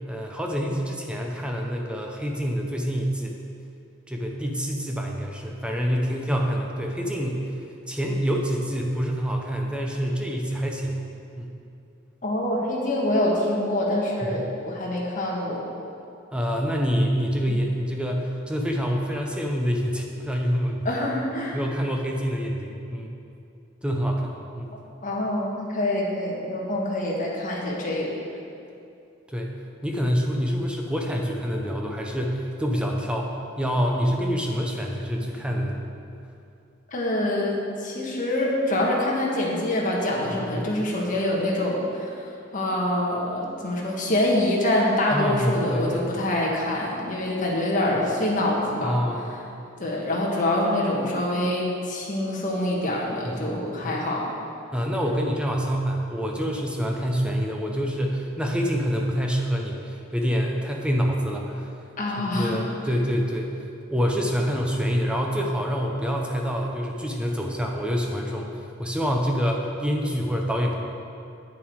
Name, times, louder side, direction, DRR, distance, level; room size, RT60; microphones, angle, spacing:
voice 1, 0.1-3.4 4.1-7.5 7.9-11.0 11.4-11.5 14.2-14.5 16.3-21.0 21.5-23.1 23.8-24.7 29.3-33.3 33.6-35.8 40.3-40.7 45.1-46.0 48.8-49.3 53.2-54.0 54.7-61.7 62.3-63.5 63.9-68.5 68.8-70.7, equal, 5° right, 0 dB, 0.7 m, -26 dB
voice 2, 12.2-15.7 17.5-17.6 20.8-21.6 25.0-28.2 36.9-49.0 49.3-49.4 49.8-54.4 62.0-62.6, left 1 dB, 40° left, -3 dB, 1.5 m, -25 dB
8.5 x 7.2 x 4.7 m, 2.7 s
head